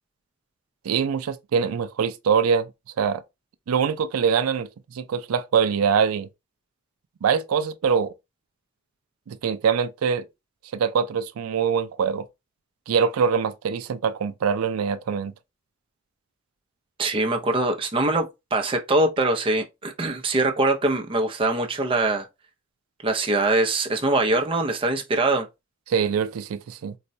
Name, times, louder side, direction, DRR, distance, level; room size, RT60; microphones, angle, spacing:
voice 1, 0.8-2.7 3.0-3.2 3.7-4.7 4.9-6.3 7.2-8.1 9.3-10.3 10.7-12.2 12.9-15.3 25.9-26.9, right 6 dB, 90° right, 0.4 m, -23 dB
voice 2, 17.0-22.3 23.0-25.5, right 2 dB, 25° right, 0.5 m, -23 dB
4.0 x 2.2 x 2.6 m
head